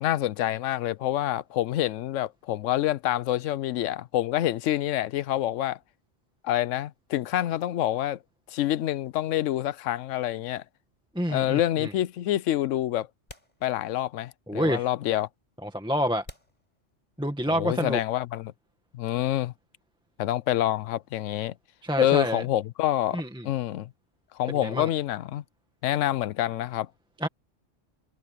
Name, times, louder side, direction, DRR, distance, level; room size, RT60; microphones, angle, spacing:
voice 1, 0.0-5.8 6.4-8.2 8.5-10.6 11.3-13.1 13.6-15.3 17.5-18.5 18.9-19.5 20.2-21.5 22.0-23.9 24.3-25.4 25.8-26.9, left 13 dB, 85° left, 0.9 m, -27 dB
voice 2, 11.1-11.9 14.5-14.9 15.6-16.3 17.2-18.0 21.8-22.4 23.1-23.5 24.5-24.9 27.2-27.3, equal, 5° right, 1.8 m, -28 dB
sound 1, 13.3-14.2 14.5-14.6 15.3-15.4 16.2-17.5, left 1 dB, 35° left, 5.1 m, -50 dB
omnidirectional pair, 1.3 m